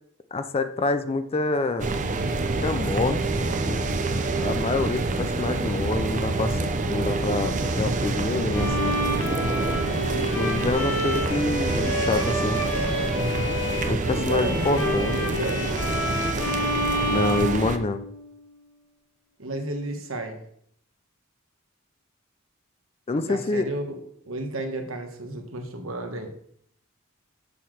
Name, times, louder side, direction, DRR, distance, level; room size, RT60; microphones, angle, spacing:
voice 1, 0.3-2.0 2.6-3.2 3.6-3.9 4.4-9.0 10.2-12.6 13.8-15.1 17.0-18.0 23.1-23.7, left 3 dB, 30° left, 10 dB, 0.4 m, -27 dB
sound 1, 1.8-17.8, right 3 dB, 40° right, 0.6 m, -27 dB
Bowed string instrument, 8.5-18.3, left 1 dB, 90° left, 1.3 m, -29 dB
voice 2, 14.1-15.7 19.4-20.4 23.2-26.3, right 2 dB, 80° right, 4 dB, 1.2 m, -32 dB
6.9 x 3.8 x 6.4 m, 0.67 s
head